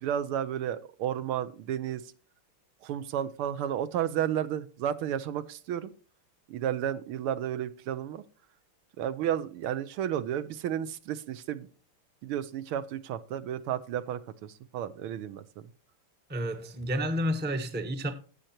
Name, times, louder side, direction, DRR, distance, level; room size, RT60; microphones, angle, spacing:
voice 1, 0.0-2.0 2.8-5.9 6.5-8.2 9.0-11.7 12.2-15.7, right 10 dB, 85° right, 1.7 m, -32 dB
voice 2, 16.3-18.1, equal, 10° right, 0.6 m, -30 dB
16.5 x 6.6 x 2.8 m
omnidirectional pair, 2.4 m